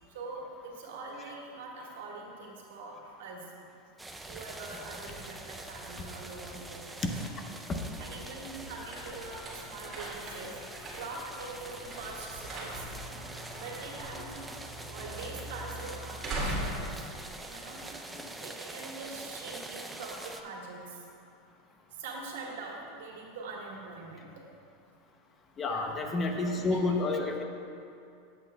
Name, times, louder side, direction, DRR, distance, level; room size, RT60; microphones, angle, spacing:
voice 1, 0.0-3.4 4.3-7.3 8.0-10.5 10.9-12.9 13.5-14.3 14.9-17.0 17.4-17.8 18.4-20.8 22.0-24.3 25.6-26.0 26.3-26.9, right 3 dB, 85° right, -2 dB, 1.6 m, -43 dB
sound 1, 4.0-20.4, right 2 dB, 5° right, 0.4 m, -45 dB
sound 2, 7.6-18.2, right 1 dB, 25° right, 2.0 m, -41 dB
voice 2, 25.6-27.4, left 3 dB, 25° left, 4 dB, 0.7 m, -30 dB
12.0 x 7.9 x 2.2 m, 2.5 s
supercardioid pair, 140°, 0 cm